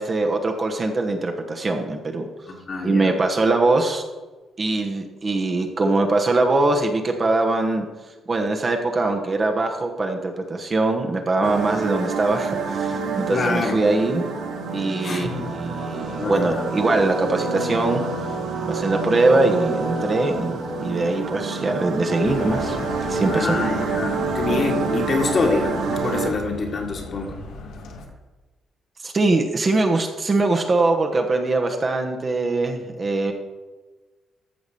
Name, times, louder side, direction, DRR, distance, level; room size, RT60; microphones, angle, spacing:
voice 1, 0.0-2.3 2.8-4.0 4.6-7.9 8.3-14.3 14.7-18.0 18.7-22.8 23.0-23.6 29.0-33.3, right 2 dB, 25° right, 3 dB, 1.1 m, -22 dB
voice 2, 2.5-3.2 13.3-13.8 15.0-15.5 16.2-16.6 23.2-27.3, left 3 dB, 35° left, 2 dB, 1.7 m, -26 dB
sound 1, 11.4-26.3, right 4 dB, 70° right, 1.8 m, -28 dB
sound 2, 22.2-28.1, left 3 dB, 85° left, 1.6 m, -36 dB
14.0 x 4.8 x 6.8 m, 1.3 s
cardioid pair, 150°, 0 cm